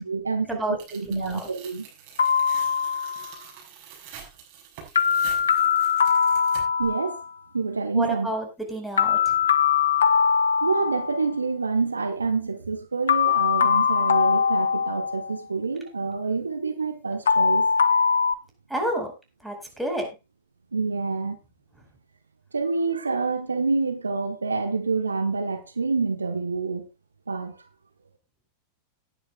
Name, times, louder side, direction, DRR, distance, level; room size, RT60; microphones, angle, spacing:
voice 1, 0.1-1.8 6.8-7.2 7.5-8.4 10.6-17.7 20.7-21.4 22.5-26.9 27.3-27.6, right 4 dB, 75° right, 1.2 m, -27 dB
Tearing, 0.8-6.9, right 8 dB, 45° right, 6.5 m, -46 dB
voice 2, 1.0-1.5 7.9-9.4 18.7-19.1 19.4-20.1, right 1 dB, ahead, 4.8 m, -29 dB
sound 1, 2.2-3.3 5.0-7.3 9.0-11.3 13.1-15.4 17.3-18.3, left 6 dB, 70° left, 0.7 m, -22 dB
18.5 x 10.0 x 2.4 m
figure-of-eight pair, 90°, 0 cm